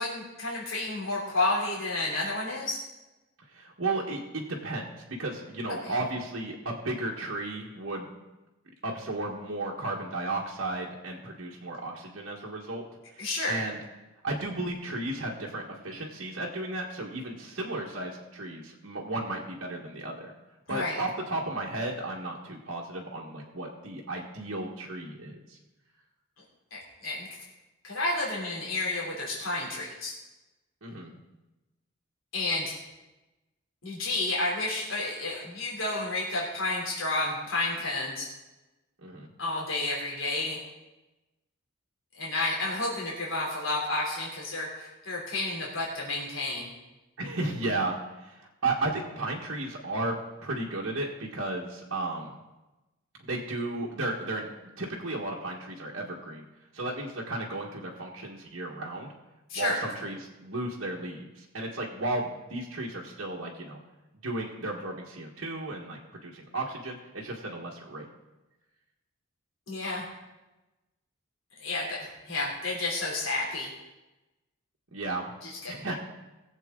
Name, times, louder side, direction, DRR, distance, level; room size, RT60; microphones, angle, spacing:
voice 1, 0.0-2.8 5.8-5.9 13.2-13.6 20.7-21.0 26.7-27.3 27.8-30.1 32.3-32.8 33.8-38.3 39.4-40.6 42.2-46.7 59.5-59.8 69.7-70.0 71.5-73.7 75.4-75.7, left 2 dB, 70° left, -4 dB, 3.1 m, -31 dB
voice 2, 3.5-8.1 8.8-12.8 13.1-13.8 14.2-20.3 20.7-25.6 30.8-31.1 39.0-39.3 47.2-52.4 53.2-54.5 54.8-56.4 56.7-59.1 59.5-63.8 64.2-68.1 74.9-75.3 75.7-75.9, right 2 dB, 65° right, -3 dB, 1.5 m, -34 dB
19.5 x 7.8 x 3.8 m, 1.0 s
head